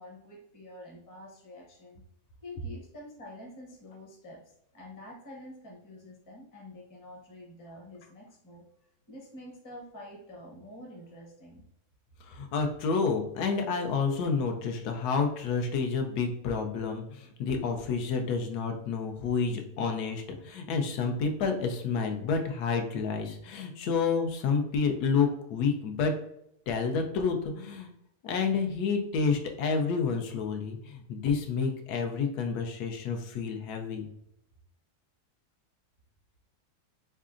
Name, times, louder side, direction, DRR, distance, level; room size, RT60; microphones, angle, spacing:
voice 1, 0.0-2.0 2.4-8.6 9.1-11.6, left 1 dB, 20° left, -1 dB, 0.5 m, -47 dB
voice 2, 12.2-26.1 26.7-27.9 28.2-34.0, left 5 dB, 80° left, 4 dB, 1.1 m, -29 dB
3.7 x 3.2 x 2.4 m, 0.76 s
omnidirectional pair, 1.7 m